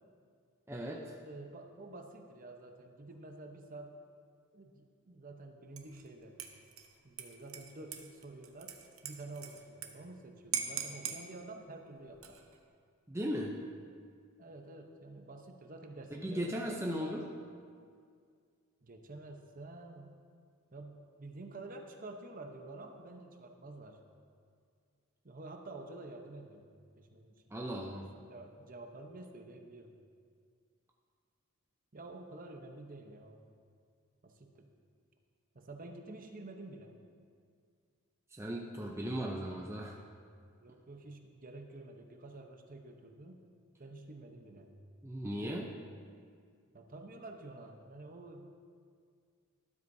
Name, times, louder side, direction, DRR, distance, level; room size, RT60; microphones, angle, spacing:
voice 1, 0.7-1.1 13.1-13.6 16.1-17.2 27.5-28.1 38.3-40.0 45.0-45.7, equal, 10° right, -1 dB, 0.6 m, -37 dB
voice 2, 1.2-3.9 4.5-6.4 7.0-8.7 9.0-12.4 14.4-17.4 18.8-20.1 20.7-24.0 25.2-27.5 27.9-29.9 31.9-33.5 34.2-34.7 35.5-36.9 40.6-43.4 43.8-44.8 46.7-48.6, right 2 dB, 40° right, 4 dB, 0.9 m, -49 dB
Dishes pots and pans / Liquid, 5.8-6.1 6.4-9.9 10.2-10.3 10.5-11.2 12.1-12.6, right 8 dB, 70° right, 0.9 m, -41 dB
12.5 x 12.5 x 2.7 m, 2.2 s
head